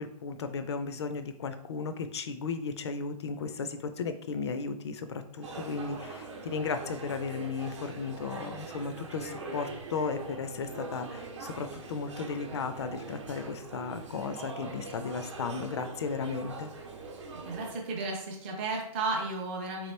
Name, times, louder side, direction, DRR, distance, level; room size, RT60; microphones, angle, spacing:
voice 1, 0.0-16.7, left 5 dB, 45° left, 9 dB, 0.4 m, -35 dB
sound 1, 5.4-17.7, right 3 dB, 50° right, 0.8 m, -42 dB
voice 2, 17.3-19.9, right 3 dB, 15° right, -1 dB, 0.5 m, -33 dB
3.7 x 2.9 x 3.2 m, 0.73 s
hypercardioid pair, 165°, 19 cm